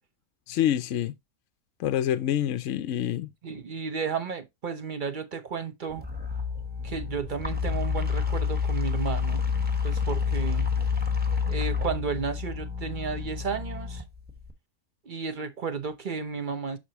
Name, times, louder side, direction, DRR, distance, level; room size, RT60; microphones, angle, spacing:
voice 1, 0.5-1.1 1.8-3.3, left 11 dB, 65° left, 0.8 m, -26 dB
voice 2, 3.4-6.0 6.8-9.4 9.8-10.7 11.5-14.0 15.0-16.8, right 6 dB, 40° right, 0.8 m, -33 dB
sound 1, 5.9-14.5, left 6 dB, 5° right, 1.1 m, -29 dB
8.1 x 6.0 x 2.9 m
omnidirectional pair, 1.5 m